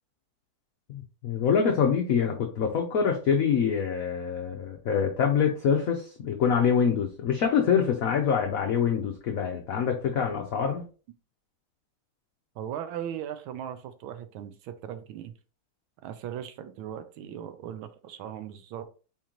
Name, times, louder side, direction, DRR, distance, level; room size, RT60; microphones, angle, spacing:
voice 1, 0.9-10.8, left 7 dB, 90° left, 2 dB, 0.7 m, -25 dB
voice 2, 12.6-15.3 16.0-18.9, right 10 dB, 80° right, 10 dB, 1.4 m, -38 dB
4.4 x 3.7 x 2.9 m, 0.36 s
omnidirectional pair, 2.3 m